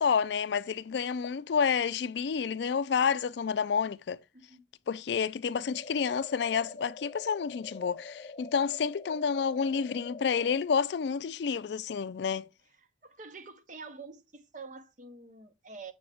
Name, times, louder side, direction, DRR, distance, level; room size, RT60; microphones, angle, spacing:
voice 1, 0.0-4.2 4.9-12.5, left 6 dB, 70° left, 0.4 m, -29 dB
sound 1, 5.6-10.6, left 3 dB, 30° left, 0.9 m, -46 dB
voice 2, 13.0-15.9, right 4 dB, 45° right, 0.9 m, -47 dB
7.8 x 6.3 x 3.4 m
head